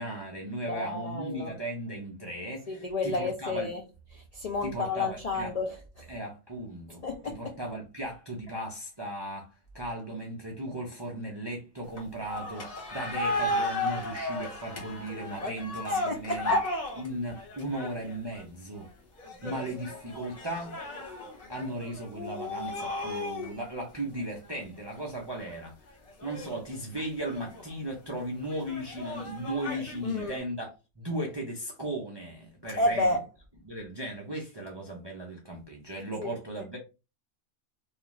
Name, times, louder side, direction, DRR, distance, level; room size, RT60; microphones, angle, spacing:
voice 1, 0.0-3.7 4.6-5.5 6.1-16.6 17.0-18.9 19.4-20.8 21.5-25.7 26.2-33.1 33.7-36.8, right 1 dB, 40° right, 0.3 m, -37 dB
voice 2, 0.7-1.5 2.7-3.8 4.1-6.0 7.0-7.5 15.4-15.6 16.1-16.6 19.4-19.5 19.9-20.0 30.0-30.4 32.8-33.2 36.2-36.4, left 2 dB, 65° left, 0.3 m, -31 dB
sound 1, 12.0-18.4 19.2-23.6 24.2-24.3 24.5-24.6 25.4-25.7 26.1-27.7 28.5-30.4, left 2 dB, 40° left, 1.0 m, -34 dB
2.4 x 2.3 x 3.0 m
omnidirectional pair, 1.3 m